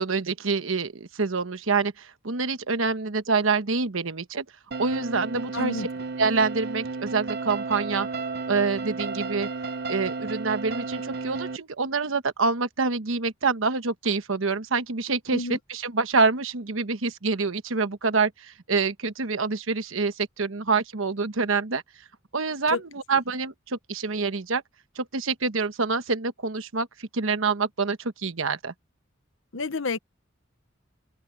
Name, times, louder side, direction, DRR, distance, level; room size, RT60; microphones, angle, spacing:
voice 1, 0.0-4.4 4.8-5.9 6.2-8.1 8.5-9.5 9.9-21.8 22.3-24.6 25.0-28.7, right 4 dB, 80° right, 1.2 m, -26 dB
sound 1, 4.7-11.6, right 4 dB, 50° right, 0.8 m, -33 dB
voice 2, 5.5-5.9 15.3-15.6 22.7-22.8 29.5-30.0, left 3 dB, 75° left, 1.1 m, -29 dB
open air
head